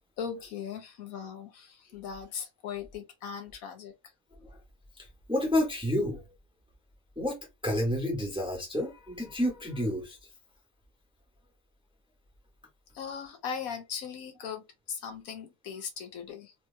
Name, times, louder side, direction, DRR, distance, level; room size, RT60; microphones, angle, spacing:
voice 1, 0.2-3.9 12.9-16.5, left 7 dB, 70° left, 1.1 m, -39 dB
voice 2, 5.0-6.2 7.2-7.4 7.6-10.2, left 1 dB, 5° right, 1.1 m, -30 dB
4.3 x 3.0 x 2.2 m
omnidirectional pair, 1.6 m